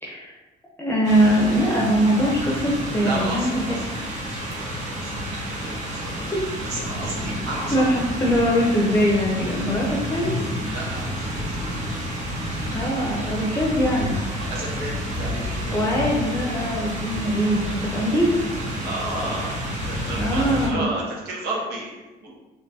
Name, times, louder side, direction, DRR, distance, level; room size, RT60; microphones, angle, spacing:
voice 1, 0.0-0.3 0.8-4.0 7.7-10.3 12.7-14.2 15.7-18.3 20.1-20.9, equal, 15° left, -4 dB, 0.7 m, -22 dB
sound 1, 1.0-20.7, equal, 45° right, 1.2 m, -30 dB
voice 2, 3.0-3.8 4.3-5.2 5.5-6.2 6.6-7.9 10.7-11.5 14.5-16.0 18.8-22.3, right 2 dB, 75° right, -3 dB, 1.0 m, -32 dB
4.4 x 3.2 x 2.7 m, 1.1 s
cardioid pair, 110°, 17 cm